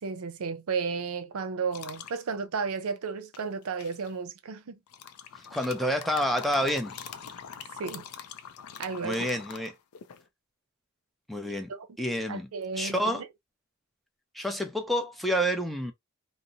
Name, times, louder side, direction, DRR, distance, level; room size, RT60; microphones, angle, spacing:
voice 1, 0.0-4.8 7.7-8.1 8.8-9.3 11.5-11.9 12.3-13.3, right 5 dB, 80° right, 0.5 m, -33 dB
sound 1, 1.7-2.2 3.3-4.1 4.9-10.2, left 8 dB, 90° left, 0.4 m, -43 dB
voice 2, 5.5-7.1 9.0-9.7 11.3-11.7 12.0-12.5 12.8-13.2 14.3-15.9, equal, ahead, 0.5 m, -28 dB
2.7 x 2.0 x 2.5 m
head